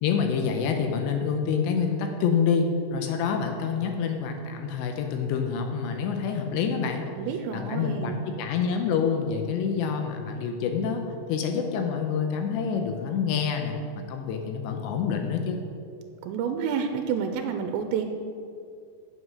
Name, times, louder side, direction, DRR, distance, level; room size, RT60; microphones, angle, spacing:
voice 1, 0.0-7.1 7.5-11.0 11.3-15.6, left 6 dB, 80° left, 4 dB, 2.9 m, -27 dB
voice 2, 7.2-8.2 16.2-18.1, right 7 dB, 85° right, 6 dB, 2.8 m, -29 dB
8.0 x 7.8 x 6.3 m, 2.4 s
omnidirectional pair, 5.1 m